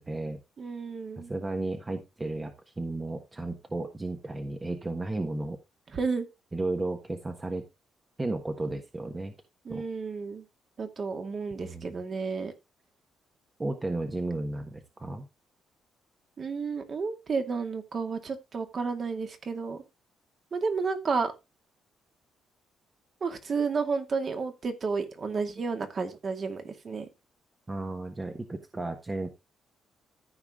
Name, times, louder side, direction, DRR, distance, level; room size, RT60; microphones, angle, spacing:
voice 1, 0.0-0.4 1.2-5.6 6.5-7.6 8.2-9.3 9.7-9.8 11.6-12.0 13.6-15.2 27.7-29.3, right 2 dB, 20° right, 1.4 m, -34 dB
voice 2, 0.6-1.3 5.9-6.3 9.6-10.4 10.8-12.5 16.4-19.8 20.5-21.3 23.2-27.1, right 4 dB, 45° right, 2.2 m, -31 dB
14.5 x 4.8 x 3.7 m
cardioid pair, 90°, 0 cm